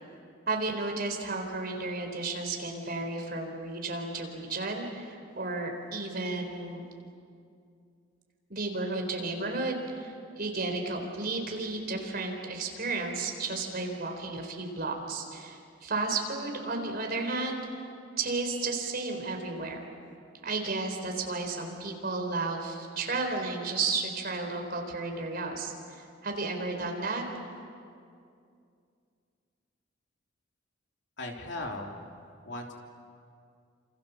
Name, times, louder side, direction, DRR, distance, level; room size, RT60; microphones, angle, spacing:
voice 1, 0.5-6.8 8.5-17.7 18.2-19.8 20.4-27.2, right 3 dB, 50° right, 3 dB, 4.2 m, -33 dB
voice 2, 31.2-32.0 32.4-32.7, left 2 dB, 60° left, 1 dB, 3.3 m, -37 dB
29.0 x 27.5 x 7.2 m, 2.4 s
head